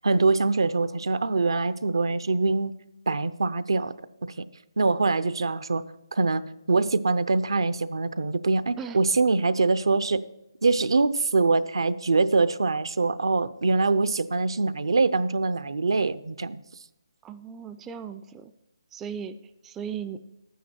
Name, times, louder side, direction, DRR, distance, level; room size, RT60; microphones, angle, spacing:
voice 1, 0.0-2.7 3.1-3.9 4.4-4.5 4.8-5.8 6.1-6.4 6.7-10.2 10.6-16.6, right 3 dB, 75° right, 14 dB, 0.6 m, -24 dB
voice 2, 17.2-18.5 18.9-19.4 19.6-20.2, right 7 dB, 10° right, 9 dB, 0.3 m, -36 dB
10.5 x 9.3 x 4.4 m, 0.89 s
hypercardioid pair, 160°, 3 cm